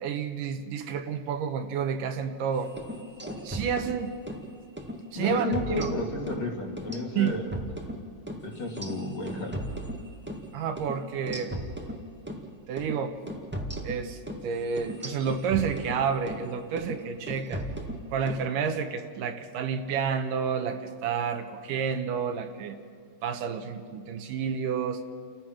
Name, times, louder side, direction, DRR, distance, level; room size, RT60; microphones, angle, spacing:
voice 1, 0.0-2.7 3.4-4.1 5.1-5.9 7.2-7.4 10.5-11.5 12.7-13.1 13.8-17.6 18.1-22.8 23.2-25.0, right 7 dB, 75° right, 7 dB, 2.5 m, -30 dB
sound 1, 2.7-4.4 4.8-5.0 5.3-6.4 6.8-10.5 10.8-10.9 11.3-12.4 12.8-13.0 13.3-16.4 16.8-17.0 17.3-18.4, equal, 15° right, 0.4 m, -37 dB
voice 2, 5.1-7.5 8.4-9.6, left 2 dB, 55° left, 0 dB, 3.4 m, -32 dB
29.5 x 15.0 x 6.0 m, 2.4 s
omnidirectional pair, 4.0 m